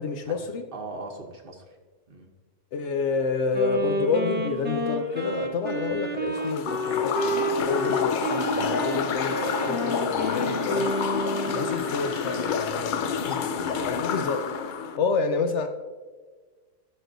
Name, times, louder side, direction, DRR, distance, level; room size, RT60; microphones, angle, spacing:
voice 1, 0.0-0.6 2.7-10.9 11.5-13.4 13.9-14.7 15.0-15.7, left 4 dB, 65° left, 6 dB, 0.8 m, -29 dB
voice 2, 0.7-1.8 2.1-2.3 12.6-13.9, right 2 dB, 45° right, 3 dB, 1.0 m, -40 dB
Wind instrument woodwind instrument, 3.5-11.7, equal, 10° right, 0.8 m, -29 dB
sound 1, 4.9-5.4 6.8-7.5 8.7-9.4 10.2-12.6, left 1 dB, 30° left, 0.9 m, -45 dB
sound 2, 6.3-15.0, left 6 dB, 85° left, 0.4 m, -29 dB
14.5 x 6.2 x 2.6 m, 1.4 s
omnidirectional pair, 1.4 m